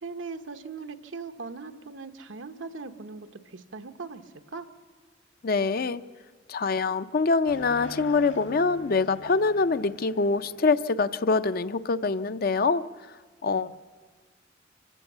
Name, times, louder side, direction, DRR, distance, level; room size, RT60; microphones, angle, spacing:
voice 1, 0.0-4.7 13.6-13.8, right 4 dB, 85° right, 9 dB, 1.0 m, -40 dB
voice 2, 5.4-6.0 6.5-12.8 13.4-13.8, left 4 dB, 50° left, 13 dB, 0.5 m, -25 dB
sound 1, 7.5-11.8, left 3 dB, 70° left, 2.1 m, -45 dB
25.5 x 16.0 x 7.3 m, 1.5 s
head